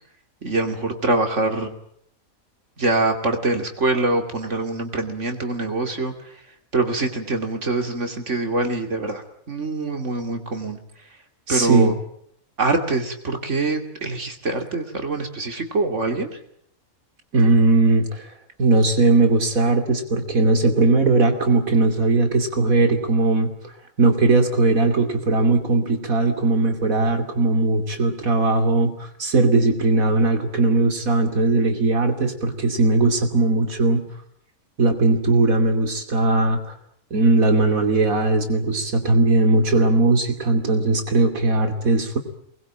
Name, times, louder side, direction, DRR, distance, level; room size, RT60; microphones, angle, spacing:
voice 1, 0.4-1.7 2.8-6.3 6.7-10.8 11.5-11.9 12.6-16.3, right 2 dB, 60° right, 6 dB, 3.0 m, -24 dB
voice 2, 11.5-11.9 17.3-18.3 18.6-23.5 24.0-34.0 34.8-36.7 37.1-42.2, right 2 dB, 80° right, 7 dB, 3.2 m, -19 dB
23.5 x 21.0 x 8.9 m, 0.69 s
omnidirectional pair, 1.4 m